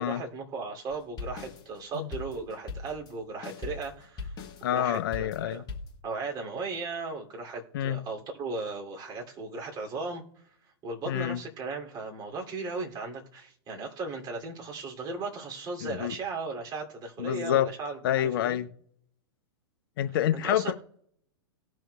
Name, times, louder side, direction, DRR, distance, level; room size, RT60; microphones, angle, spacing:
voice 1, 0.0-4.3 4.7-5.6 6.0-10.2 10.8-18.6 20.3-20.7, right 3 dB, 30° right, 0 dB, 2.8 m, -36 dB
sound 1, 0.9-6.0, left 4 dB, 25° left, 1.5 m, -40 dB
voice 2, 4.6-5.6 7.7-8.0 11.1-11.4 15.8-16.1 17.2-17.7 18.0-18.7 20.0-20.7, left 11 dB, 55° left, 10 dB, 0.7 m, -27 dB
18.5 x 6.2 x 2.3 m, 0.65 s
hypercardioid pair, 110°, 14 cm